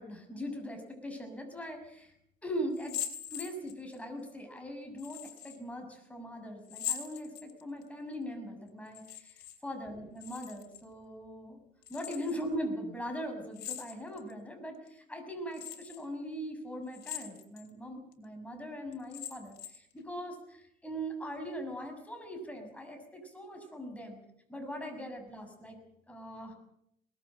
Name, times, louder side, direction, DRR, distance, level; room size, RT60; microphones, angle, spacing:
voice 1, 0.0-2.1 2.4-3.0 3.3-11.6 11.9-24.2 24.5-25.8 26.1-26.5, equal, 10° left, 4 dB, 6.6 m, -40 dB
sound 1, 2.7-4.0 5.0-5.6 6.7-7.8 8.9-9.6 9.9-10.8 11.8-12.4 13.5-14.3 14.9-15.0 15.5-16.0 16.9-17.7 18.1-18.2 18.9-19.9, left 10 dB, 80° left, 2.9 m, -41 dB
22.0 x 19.5 x 7.7 m, 0.75 s
cardioid pair, 110°, 17 cm